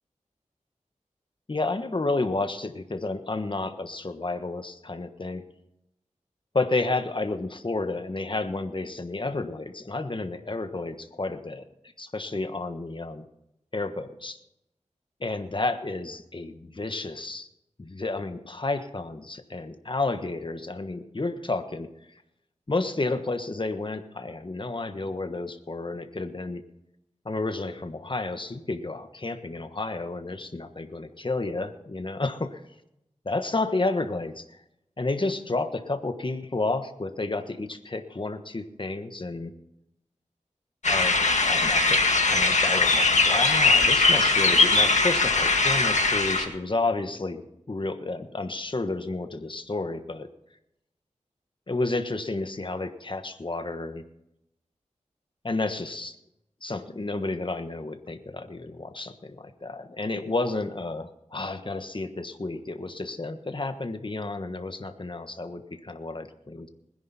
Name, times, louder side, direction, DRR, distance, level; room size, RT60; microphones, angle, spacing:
voice 1, 1.5-5.4 6.5-11.6 12.0-13.2 13.7-14.4 15.2-17.5 17.8-21.9 22.7-26.6 27.2-32.6 33.2-34.4 35.0-39.5 40.9-50.3 51.7-54.0 55.4-56.2 56.6-66.7, left 2 dB, 40° left, 8 dB, 1.3 m, -31 dB
sound 1, 40.8-46.5, left 3 dB, 70° left, 1.8 m, -21 dB
20.5 x 10.5 x 4.2 m, 0.84 s
wide cardioid pair, 55°, 13 cm